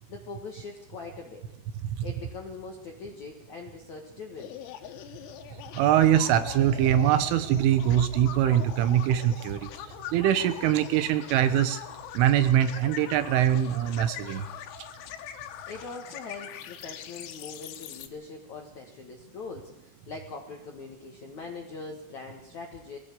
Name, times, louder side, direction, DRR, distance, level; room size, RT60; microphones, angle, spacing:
voice 1, 0.0-1.4 2.0-4.6 15.7-23.0, left 4 dB, 65° left, 2 dB, 1.8 m, -42 dB
sound 1, 4.4-18.1, left 10 dB, 85° left, 4.1 m, -42 dB
voice 2, 5.8-9.7 10.1-11.8 12.2-14.5, right 11 dB, 80° right, 11 dB, 3.5 m, -23 dB
21.5 x 16.5 x 8.4 m, 0.95 s
omnidirectional pair, 5.9 m